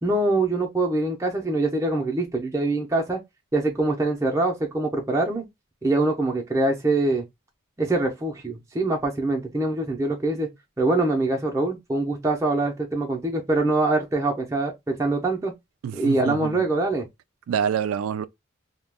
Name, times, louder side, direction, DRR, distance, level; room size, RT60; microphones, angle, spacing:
voice 1, 0.0-3.2 3.5-5.5 5.8-7.2 7.8-10.5 10.8-15.5 15.9-17.1, right 2 dB, 15° right, 0.5 m, -24 dB
voice 2, 15.8-16.6 17.5-18.3, right 8 dB, 90° right, 0.3 m, -26 dB
2.3 x 2.2 x 3.3 m
head